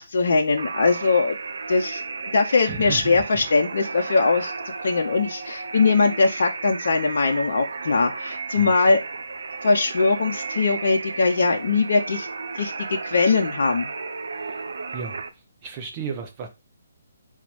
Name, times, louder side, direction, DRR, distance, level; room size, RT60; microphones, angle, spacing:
voice 1, 0.0-1.4 1.7-2.0 2.3-4.5 4.8-9.0 9.6-12.3 12.6-13.9, left 4 dB, 55° left, 1.0 m, -21 dB
sound 1, 0.6-15.3, right 4 dB, 60° right, 0.8 m, -34 dB
voice 2, 2.7-3.4 8.5-8.7 14.4-14.6 14.9-15.2 15.6-16.5, right 6 dB, 30° right, 1.4 m, -34 dB
5.1 x 3.7 x 5.1 m
figure-of-eight pair, 140°, 0 cm